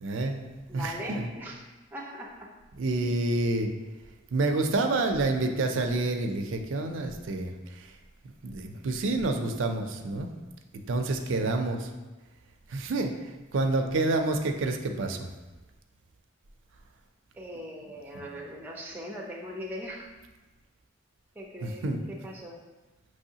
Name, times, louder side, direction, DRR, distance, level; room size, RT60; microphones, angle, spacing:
voice 1, 0.0-0.5 0.7-1.3 2.7-3.7 4.3-7.9 8.4-10.3 10.9-11.9 12.7-15.3 18.1-18.3 21.6-22.0, right 2 dB, 65° right, 4 dB, 0.4 m, -28 dB
voice 2, 0.7-2.5 17.3-20.1 21.4-22.6, equal, 10° right, -2 dB, 0.5 m, -40 dB
5.4 x 3.1 x 2.7 m, 1.2 s
head